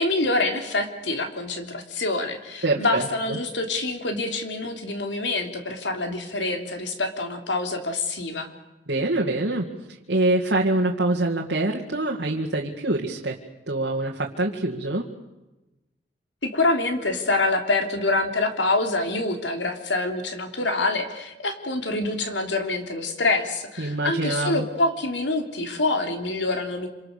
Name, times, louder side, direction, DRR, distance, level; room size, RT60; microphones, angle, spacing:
voice 1, 0.0-8.5 16.4-26.9, left 2 dB, 85° left, 5 dB, 3.4 m, -26 dB
voice 2, 2.6-3.4 8.9-13.4 13.7-15.1 23.8-24.7, right 2 dB, 75° right, 0 dB, 2.2 m, -25 dB
27.0 x 26.5 x 6.8 m, 1.0 s
head